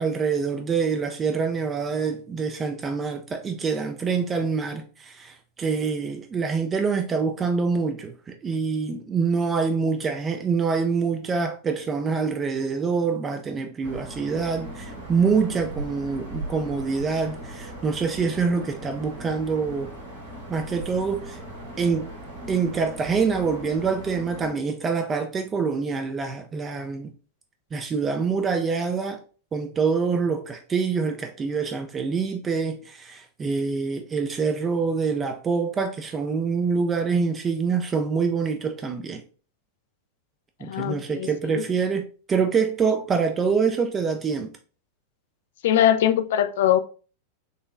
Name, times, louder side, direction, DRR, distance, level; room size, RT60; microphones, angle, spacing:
voice 1, 0.0-19.9 20.5-21.4 21.8-22.1 22.5-27.1 27.7-29.2 29.5-39.2 40.6-44.5, right 5 dB, 20° right, 0.4 m, -25 dB
sound 1, 13.8-24.5, right 1 dB, 70° right, 1.5 m, -39 dB
voice 2, 40.6-41.5 45.6-46.8, left 11 dB, 55° left, 0.3 m, -21 dB
3.8 x 2.9 x 2.4 m
figure-of-eight pair, 90°, 0 cm